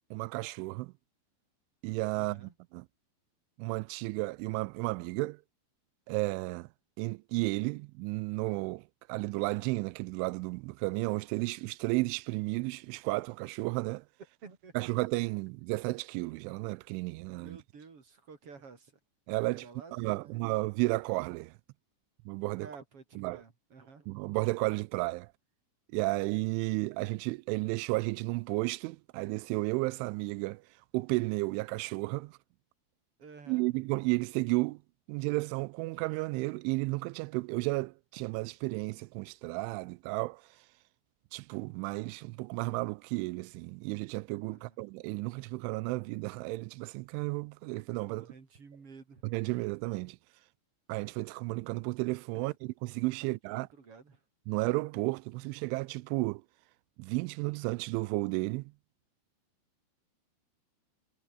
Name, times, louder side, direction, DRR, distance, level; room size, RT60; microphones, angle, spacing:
voice 1, 0.1-0.9 1.8-2.8 3.6-5.4 6.1-6.7 7.0-14.0 14.8-17.6 19.3-19.7 19.9-21.5 22.3-22.7 23.2-23.4 24.1-25.3 25.9-30.6 30.9-32.4 33.5-34.8 35.1-40.4 41.3-48.3 49.2-50.2 50.9-53.7 54.5-56.4 57.0-58.7, right 24 dB, 85° right, 2.8 m, -33 dB
voice 2, 2.1-2.5 14.4-14.8 17.4-18.9 19.6-20.4 22.6-24.1 33.2-33.7 44.5-44.8 48.1-49.2 53.5-54.2, right 5 dB, 30° right, 3.9 m, -52 dB
omnidirectional pair, 5.7 m